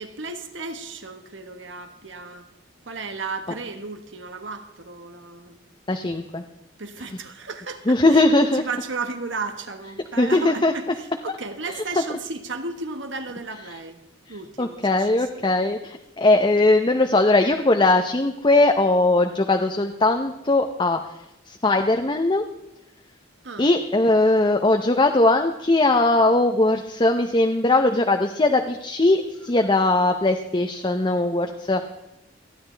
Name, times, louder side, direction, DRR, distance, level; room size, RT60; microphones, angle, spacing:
voice 1, 0.0-2.5 2.9-5.6 6.8-8.3 8.6-14.0 14.3-15.4 23.4-23.7 29.4-29.7, right 3 dB, 85° right, 7 dB, 1.4 m, -34 dB
voice 2, 5.9-6.4 7.9-8.6 10.2-10.7 14.6-21.0 21.5-22.4 23.6-31.8, left 2 dB, 25° left, 5 dB, 0.7 m, -20 dB
27.5 x 10.0 x 3.4 m, 0.91 s
head